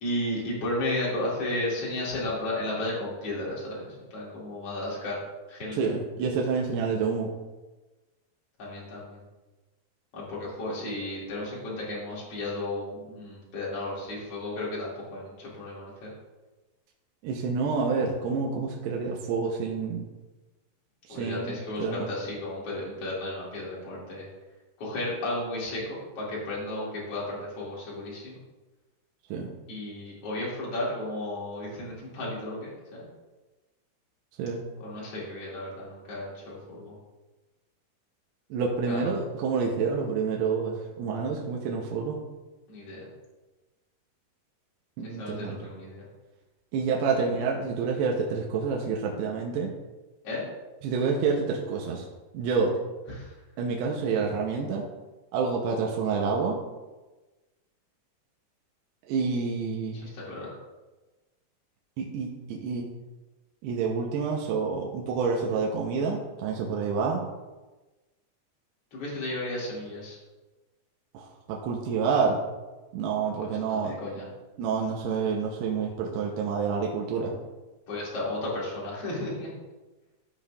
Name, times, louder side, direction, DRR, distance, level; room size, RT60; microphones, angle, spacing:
voice 1, 0.0-5.2 5.5-5.8 8.6-9.2 10.1-16.1 21.1-24.3 24.8-28.4 29.7-32.7 33.0-33.1 34.8-36.9 38.9-39.1 42.7-43.1 45.0-46.0 47.2-47.3 50.2-50.5 53.1-53.3 59.9-60.5 68.9-70.2 73.2-73.3 73.6-74.3 77.9-79.5, left 1 dB, 40° left, -6 dB, 2.6 m, -34 dB
voice 2, 5.7-7.3 17.2-20.0 21.1-22.1 29.3-29.5 34.4-34.6 38.5-42.2 45.0-45.7 46.7-49.7 50.8-52.1 52.3-52.8 53.6-54.8 55.3-56.6 59.1-60.0 62.0-62.9 63.6-67.2 71.1-72.4 72.9-73.9 74.6-77.3, right 5 dB, 80° right, 0 dB, 2.5 m, -28 dB
14.0 x 5.5 x 2.4 m, 1.2 s
omnidirectional pair, 5.3 m